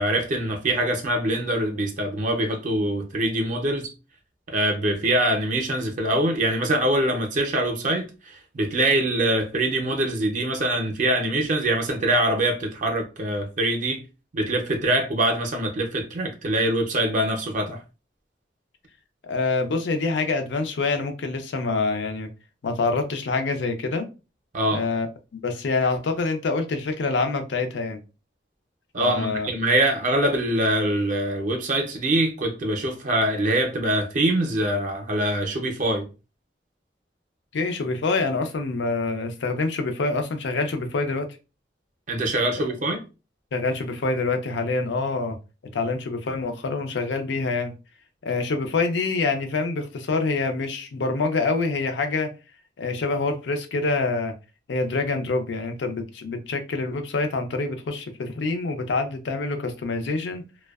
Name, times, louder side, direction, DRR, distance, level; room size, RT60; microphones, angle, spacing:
voice 1, 0.0-3.9 4.5-14.0 14.3-17.8 24.5-24.8 28.9-36.1 42.1-43.0, right 1 dB, 45° right, 0.5 m, -24 dB
voice 2, 19.2-22.3 22.6-24.1 24.7-25.1 25.4-28.0 29.0-29.5 37.5-41.3 43.5-45.4 45.7-47.7 48.2-52.3 52.8-54.3 54.7-60.4, left 3 dB, 75° left, 0.5 m, -26 dB
2.5 x 2.1 x 2.3 m
head